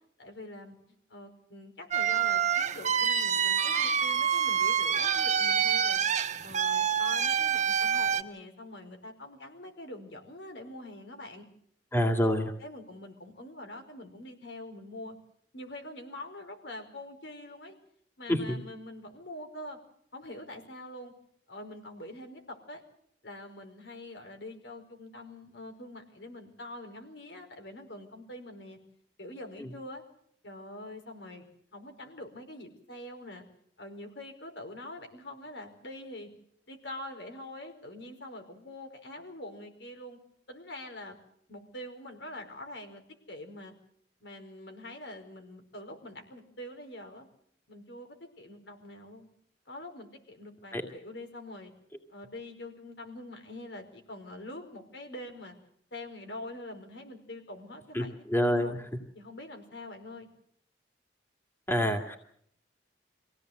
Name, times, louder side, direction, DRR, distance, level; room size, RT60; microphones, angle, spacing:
voice 1, 0.2-0.8 1.1-6.0 6.4-11.4 12.6-15.2 15.5-17.7 18.2-19.8 20.1-21.1 21.5-22.8 23.2-28.8 29.2-30.0 30.4-31.5 31.7-33.4 33.8-36.3 36.7-40.2 40.5-41.2 41.5-43.0 43.3-43.7 44.2-47.3 47.7-49.3 49.7-51.7 52.1-55.5 55.9-58.8 59.1-60.3, left 1 dB, 80° left, 4 dB, 4.9 m, -44 dB
sound 1, 1.9-8.2, right 8 dB, 40° right, 1.1 m, -27 dB
voice 2, 11.9-12.5 18.3-18.6 29.6-29.7 50.7-50.8 57.9-58.8 61.7-62.2, equal, 15° left, 4 dB, 2.3 m, -27 dB
25.5 x 17.0 x 7.9 m, 0.67 s
head